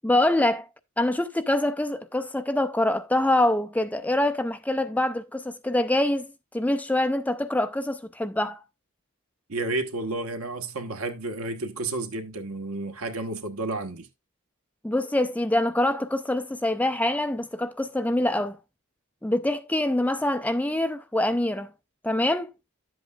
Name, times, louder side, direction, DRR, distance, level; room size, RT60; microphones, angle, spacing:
voice 1, 0.0-0.7 1.0-8.6 14.8-18.6 19.2-21.7 22.0-22.5, left 1 dB, 5° left, 0.4 m, -25 dB
voice 2, 9.5-14.1, right 2 dB, 80° right, 1.3 m, -31 dB
11.0 x 7.9 x 2.4 m
head